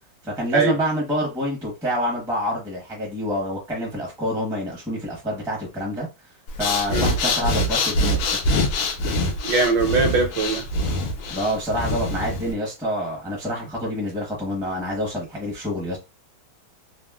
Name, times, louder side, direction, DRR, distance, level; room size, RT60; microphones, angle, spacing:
voice 1, 0.2-6.1 6.6-8.5 11.3-16.0, equal, 5° right, 0.4 m, -27 dB
Breathing, 6.5-12.5, left 1 dB, 90° left, 1.5 m, -24 dB
voice 2, 9.4-10.7, right 4 dB, 70° right, 1.2 m, -21 dB
3.5 x 2.0 x 2.3 m
omnidirectional pair, 2.1 m